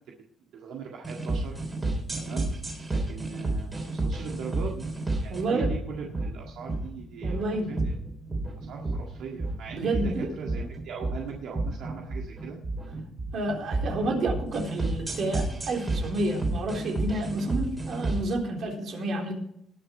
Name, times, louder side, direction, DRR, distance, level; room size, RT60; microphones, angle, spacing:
voice 1, 0.5-1.6 2.2-2.5 2.9-4.9 5.2-7.9 8.6-12.6, right 5 dB, 75° right, -1 dB, 1.9 m, -40 dB
sound 1, 1.0-18.3, right 2 dB, 20° right, 3.4 m, -31 dB
voice 2, 5.3-5.7 7.2-7.7 9.7-10.3 13.3-19.3, right 2 dB, 55° right, 0 dB, 3.7 m, -30 dB
19.5 x 6.8 x 4.5 m, 0.75 s
cardioid pair, 130°, 0 cm